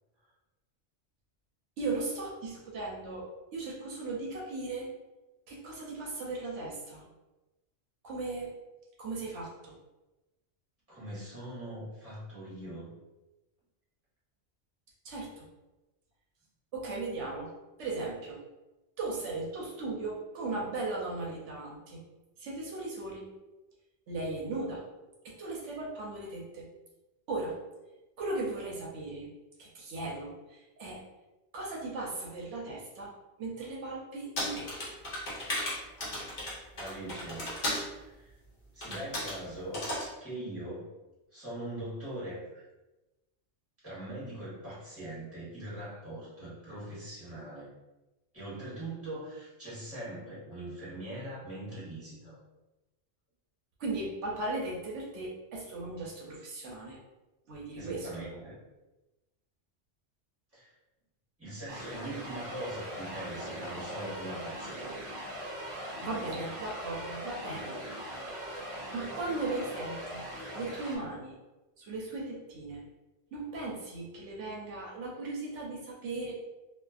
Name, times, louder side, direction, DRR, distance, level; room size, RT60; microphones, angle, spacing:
voice 1, 1.8-4.9 5.5-7.0 8.0-8.5 9.0-9.8 15.0-15.5 16.7-17.5 17.8-18.4 19.0-22.0 22.4-23.3 24.1-24.8 25.2-26.7 27.3-27.6 28.2-29.3 29.6-31.0 31.5-33.1 33.4-34.9 53.8-57.0 57.5-58.2 66.0-67.8 68.5-68.6 68.9-70.2 70.5-71.4 71.8-72.8 73.3-76.3, right 2 dB, 80° right, -3 dB, 0.9 m, -37 dB
voice 2, 10.9-13.0 36.8-37.6 37.9-38.4 38.7-39.8 40.2-40.9 41.3-42.6 43.8-47.7 48.3-52.4 57.7-58.5 60.5-60.7 61.4-65.0, right 1 dB, 10° right, -9 dB, 1.1 m, -41 dB
sound 1, 34.4-37.9 38.8-39.4 39.7-40.1, left 1 dB, 45° left, 0.9 m, -35 dB
sound 2, 61.7-71.0, equal, 55° right, 0.7 m, -40 dB
2.4 x 2.4 x 2.3 m, 1.1 s
omnidirectional pair, 1.2 m